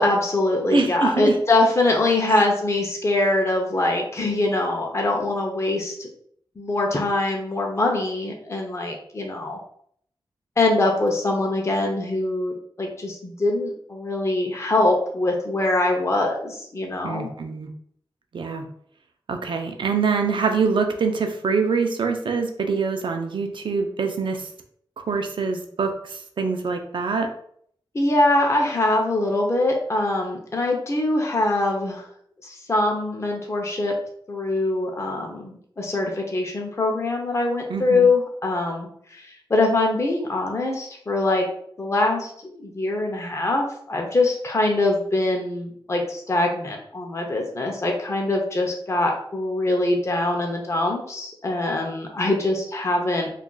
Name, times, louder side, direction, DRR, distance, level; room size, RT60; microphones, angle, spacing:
voice 1, 0.0-6.1 6.6-9.6 10.6-17.3 27.9-32.0 32.4-33.9 34.3-41.4 41.8-53.3, left 2 dB, 30° left, 0 dB, 0.6 m, -23 dB
voice 2, 0.7-1.4 2.3-2.4 17.0-17.7 18.3-18.7 19.3-24.5 25.1-27.3 37.7-38.1, right 4 dB, 70° right, 5 dB, 0.5 m, -24 dB
2.4 x 2.2 x 3.8 m, 0.64 s
wide cardioid pair, 75°, 9 cm